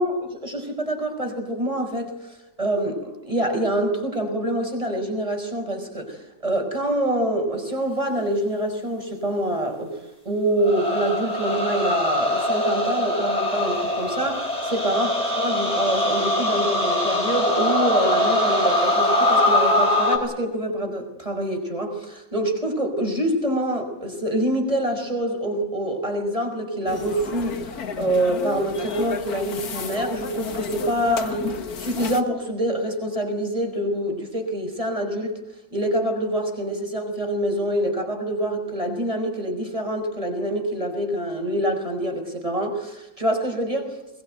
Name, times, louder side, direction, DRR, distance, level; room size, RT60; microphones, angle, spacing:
voice 1, 0.0-2.1 2.6-10.0 10.3-27.6 28.0-35.4 35.7-43.9, right 1 dB, 15° right, 4 dB, 5.5 m, -26 dB
sound 1, 10.6-20.2, left 1 dB, 20° left, 5.2 m, -22 dB
sound 2, 26.9-32.2, left 6 dB, 55° left, 1.9 m, -32 dB
22.5 x 21.5 x 9.0 m, 0.89 s
omnidirectional pair, 1.9 m